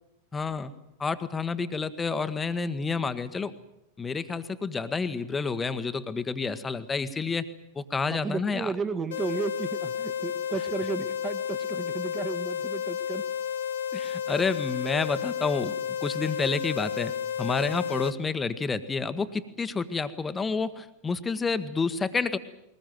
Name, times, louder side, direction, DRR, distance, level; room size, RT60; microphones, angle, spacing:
voice 1, 0.3-0.7 1.0-3.5 4.0-7.4 7.7-8.7 13.9-15.7 16.0-17.1 17.4-22.4, left 4 dB, 15° left, 12 dB, 1.4 m, -29 dB
voice 2, 8.1-13.2, right 5 dB, 20° right, 9 dB, 1.7 m, -33 dB
sound 1, 9.1-18.1, left 8 dB, 60° left, 1.2 m, -32 dB
21.5 x 20.0 x 9.3 m, 0.83 s
figure-of-eight pair, 90°, 0 cm